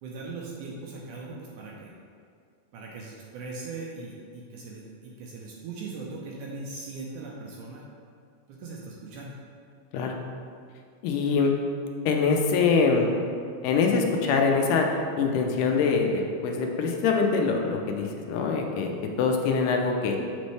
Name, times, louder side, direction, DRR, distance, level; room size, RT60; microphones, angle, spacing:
voice 1, 0.0-1.9 2.7-7.9 8.5-9.3, right 3 dB, 75° right, -2 dB, 2.0 m, -39 dB
voice 2, 11.0-11.5 12.1-13.1 13.6-14.9 15.2-18.9 19.2-20.2, left 5 dB, 80° left, 2 dB, 2.1 m, -24 dB
7.1 x 5.2 x 3.2 m, 2.2 s
omnidirectional pair, 3.8 m